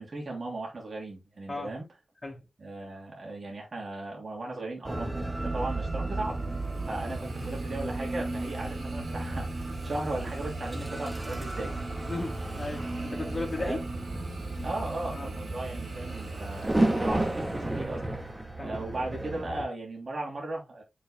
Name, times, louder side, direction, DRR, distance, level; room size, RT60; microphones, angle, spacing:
voice 1, 0.0-1.9 2.6-6.4 6.9-11.7 13.5-13.8 14.6-18.0 18.6-20.8, right 2 dB, 55° right, 3.2 m, -37 dB
sound 1, 4.8-19.6, right 2 dB, 20° right, 1.8 m, -33 dB
Hiss, 6.1-18.3, right 2 dB, 75° right, 4.0 m, -47 dB
voice 2, 12.1-13.8 15.1-15.3 18.6-18.9, left 2 dB, 40° left, 2.1 m, -35 dB
7.5 x 6.0 x 2.3 m
cardioid pair, 50°, 0 cm